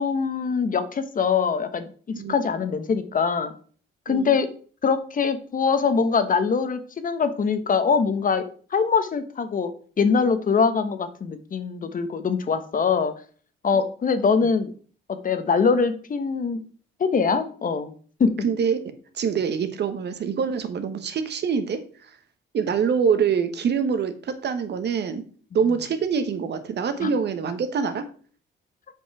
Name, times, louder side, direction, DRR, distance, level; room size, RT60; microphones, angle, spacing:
voice 1, 0.0-3.5 4.1-4.5 4.8-8.5 8.7-9.7 10.0-13.1 13.6-14.7 15.1-16.6 17.0-17.9 18.2-18.4 27.0-27.1, left 5 dB, 45° left, 10 dB, 1.1 m, -23 dB
voice 2, 18.4-18.8 19.1-22.2 22.5-25.2 25.5-28.1, right 6 dB, 60° right, 10 dB, 1.2 m, -25 dB
7.6 x 5.3 x 4.8 m, 0.43 s
cardioid pair, 90°, 20 cm